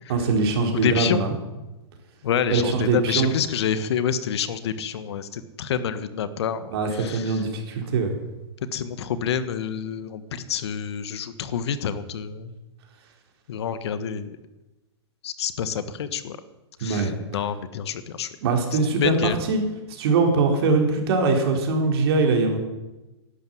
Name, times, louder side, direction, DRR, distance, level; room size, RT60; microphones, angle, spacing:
voice 1, 0.1-1.4 2.5-3.3 6.7-8.1 16.8-17.1 18.4-19.6 19.9-22.6, right 3 dB, 60° right, 3 dB, 4.2 m, -22 dB
voice 2, 0.8-1.3 2.2-7.4 8.7-12.6 13.5-14.4 15.2-16.4 16.8-18.3 18.9-19.4, left 8 dB, 65° left, 12 dB, 1.5 m, -28 dB
12.0 x 12.0 x 9.3 m, 1.0 s
hypercardioid pair, 120°, 15 cm